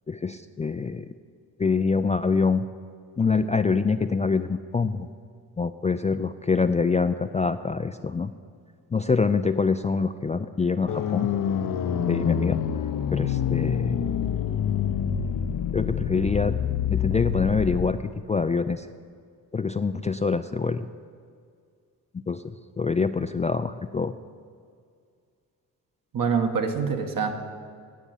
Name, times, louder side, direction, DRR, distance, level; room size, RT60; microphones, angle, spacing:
voice 1, 0.1-1.0 1.6-2.6 3.2-5.1 5.6-8.3 8.9-11.3 12.0-12.6 13.1-14.0 15.7-16.6 16.9-18.0 18.3-18.9 19.5-20.9 22.3-24.1, left 4 dB, 20° left, 9 dB, 0.4 m, -25 dB
sound 1, 10.9-17.9, left 8 dB, 55° left, 0.8 m, -26 dB
voice 2, 26.1-27.3, right 5 dB, 55° right, 4 dB, 1.6 m, -25 dB
10.0 x 7.9 x 8.5 m, 2.1 s
supercardioid pair, 65°, 40 cm